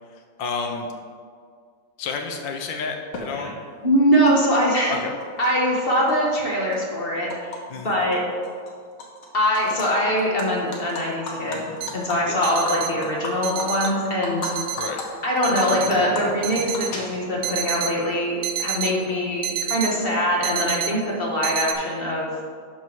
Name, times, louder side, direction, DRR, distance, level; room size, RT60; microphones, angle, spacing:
voice 1, 0.4-0.9 2.0-3.5 4.9-5.1 7.7-7.9 12.3-12.4 14.8-15.0, left 5 dB, 70° left, 3 dB, 1.5 m, -30 dB
Animal, 3.1-3.2 4.3-4.4 4.6-5.5 5.8-7.6 7.9-8.1 8.4-9.3 9.5-9.9 10.2-14.5 14.8-15.0 15.4-17.5, left 3 dB, 85° left, 2.1 m, -34 dB
voice 2, 3.8-5.0 5.4-7.6 7.8-8.2 9.3-11.6 11.9-14.5 15.2-22.3, equal, 30° left, -3 dB, 1.4 m, -22 dB
sound 1, 11.8-11.9 12.4-12.9 13.4-13.9 14.4-14.9 15.4-15.9 16.4-16.9 17.4-17.9 18.4-18.9 19.4-19.9 20.4-20.9 21.4-21.7, right 9 dB, 85° right, 1.5 m, -28 dB
11.5 x 4.6 x 4.6 m, 2.1 s
omnidirectional pair, 2.2 m